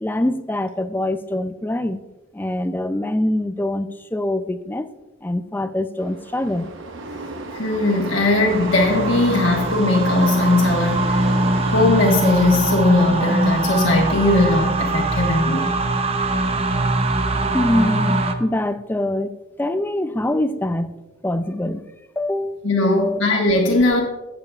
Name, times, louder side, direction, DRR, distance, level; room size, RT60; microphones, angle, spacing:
voice 1, 0.0-2.0 2.3-4.9 5.2-6.7 17.5-19.3 19.6-21.0 21.2-21.9 22.2-23.2, left 1 dB, 10° left, 11 dB, 0.3 m, -24 dB
sound 1, 6.0-13.9, right 2 dB, 65° right, 0.9 m, -32 dB
voice 2, 7.5-11.4 11.7-15.8 22.6-24.0, left 2 dB, 65° left, -2 dB, 1.3 m, -19 dB
sound 2, 8.5-18.3, right 2 dB, 30° right, 0.6 m, -22 dB
17.0 x 6.8 x 2.4 m, 1.1 s
head